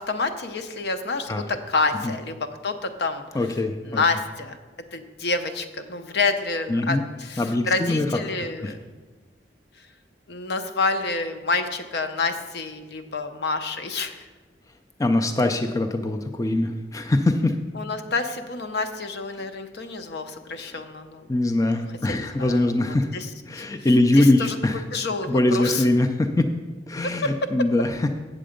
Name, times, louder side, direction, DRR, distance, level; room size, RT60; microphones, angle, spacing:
voice 1, 0.0-3.2 3.8-4.6 4.9-8.8 9.8-9.9 10.3-14.3 17.7-21.3 22.0-23.7 24.1-24.6 24.9-25.9 27.2-27.5, left 3 dB, 65° left, 7 dB, 0.7 m, -28 dB
voice 2, 3.3-4.0 6.7-7.0 7.4-8.1 8.6-8.7 15.0-17.6 20.7-20.8 21.3-23.1 23.5-24.8 25.3-26.5 26.9-28.1, left 1 dB, 20° left, 5 dB, 0.4 m, -22 dB
7.7 x 7.6 x 5.1 m, 1.3 s
head